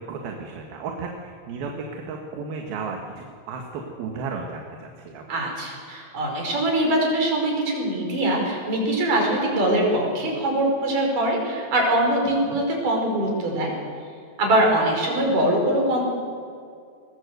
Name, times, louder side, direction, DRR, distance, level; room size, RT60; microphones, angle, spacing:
voice 1, 0.1-5.3 12.4-12.6, right 4 dB, 75° right, 2 dB, 3.5 m, -34 dB
voice 2, 5.3-13.7 14.4-16.0, right 1 dB, 60° right, 0 dB, 6.7 m, -22 dB
22.0 x 20.0 x 8.1 m, 2.2 s
omnidirectional pair, 4.3 m